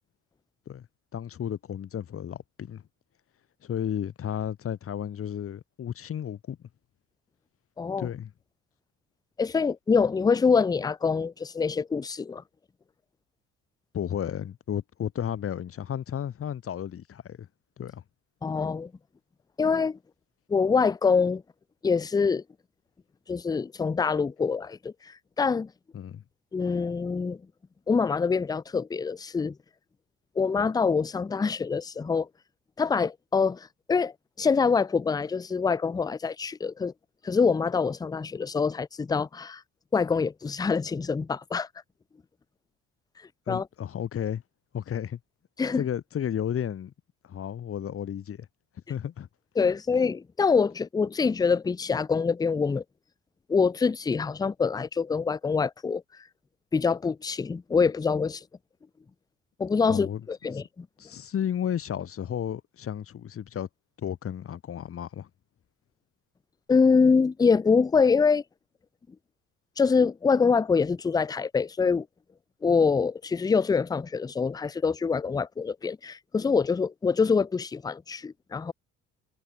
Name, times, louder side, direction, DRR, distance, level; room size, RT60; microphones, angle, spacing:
voice 1, 1.1-2.8 3.6-6.6 8.0-8.3 13.9-17.5 17.8-18.0 25.9-26.2 43.5-44.4 44.7-45.2 45.7-46.9 47.2-48.5 48.9-49.3 59.9-60.2 61.0-63.7 64.0-65.3, left 9 dB, 45° left, 1.6 m, -33 dB
voice 2, 7.8-8.1 9.4-12.4 18.4-18.9 19.6-20.0 20.5-21.4 21.8-22.4 23.3-25.7 26.5-27.4 27.9-29.6 30.4-32.3 32.8-36.9 37.2-39.6 39.9-41.7 43.5-43.7 45.6-45.8 49.6-52.8 53.5-56.0 56.7-58.4 59.6-60.9 66.7-68.4 69.8-72.1 72.6-78.7, left 5 dB, 10° left, 0.4 m, -25 dB
cardioid pair, 90°, 32 cm